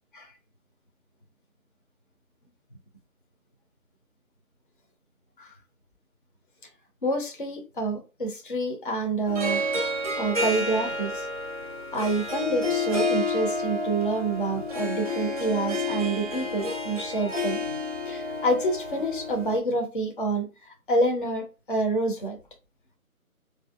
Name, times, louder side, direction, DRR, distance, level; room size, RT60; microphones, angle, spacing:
voice 1, 7.0-9.6 10.2-11.3 11.9-17.6 18.1-20.5 20.9-22.4, right 2 dB, 40° left, 0.6 m, -27 dB
Harp, 9.3-19.6, left 2 dB, 25° right, 0.6 m, -30 dB
4.2 x 2.6 x 2.3 m
figure-of-eight pair, 155°, 43 cm